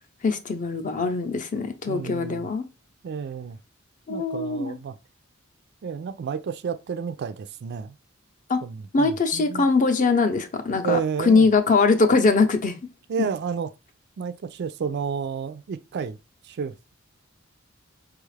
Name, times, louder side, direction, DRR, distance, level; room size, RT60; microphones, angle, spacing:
voice 1, 0.2-2.6 4.1-4.7 8.5-8.6 8.9-12.8, left 4 dB, 40° left, 0.6 m, -22 dB
voice 2, 1.9-2.5 3.0-3.6 4.1-5.0 5.8-8.0 8.6-9.7 10.8-11.5 13.1-13.7 14.2-16.2 16.4-16.9, right 6 dB, 55° right, 0.3 m, -31 dB
4.8 x 2.4 x 3.2 m
head